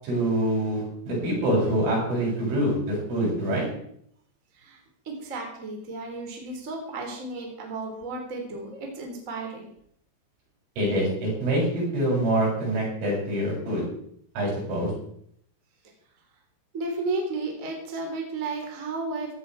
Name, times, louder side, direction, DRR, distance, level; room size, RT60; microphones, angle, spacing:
voice 1, 0.0-3.7 10.8-13.8 14.3-14.9, right 1 dB, 75° right, -4 dB, 10.5 m, -25 dB
voice 2, 5.0-9.7 16.7-19.3, right 3 dB, 20° right, 1 dB, 3.1 m, -33 dB
16.5 x 13.5 x 4.9 m, 0.68 s
omnidirectional pair, 5.7 m